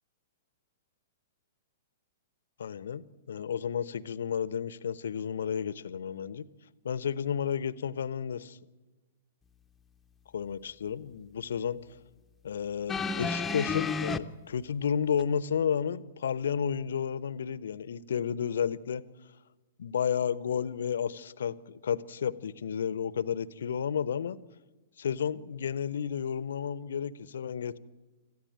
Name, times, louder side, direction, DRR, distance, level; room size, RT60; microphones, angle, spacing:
voice 1, 2.6-6.5 6.8-8.6 10.3-11.8 12.4-19.0 19.8-24.4 25.0-27.8, left 7 dB, 60° left, 19 dB, 0.8 m, -32 dB
sound 1, 12.9-14.2 15.2-15.3, left 4 dB, 10° left, 0.9 m, -31 dB
26.5 x 14.5 x 9.2 m, 1.3 s
figure-of-eight pair, 105°, 0 cm